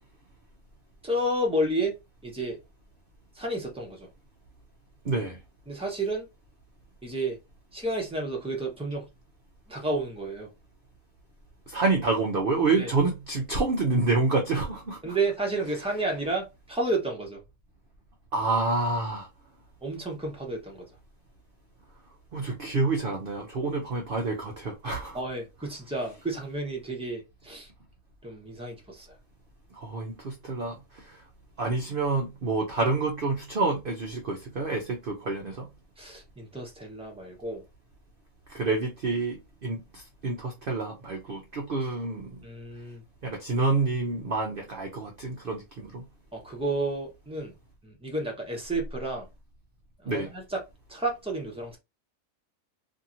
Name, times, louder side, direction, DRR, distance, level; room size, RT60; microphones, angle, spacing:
voice 1, 1.0-1.9 2.2-2.6 3.3-4.1 5.7-6.3 7.0-7.4 7.7-9.1 9.7-10.5 12.8-12.9 15.0-17.4 19.8-20.9 25.1-27.7 28.2-29.1 36.0-37.6 42.4-43.0 46.3-47.5 47.8-49.3 50.0-50.6 50.9-51.8, right 2 dB, 5° right, 0.5 m, -31 dB
voice 2, 5.0-5.4 11.7-15.2 18.3-19.3 22.3-25.2 29.7-31.2 31.6-35.7 38.5-42.4 43.2-46.0 50.1-50.3, right 3 dB, 60° right, 0.6 m, -28 dB
2.8 x 2.7 x 2.5 m
omnidirectional pair, 1.6 m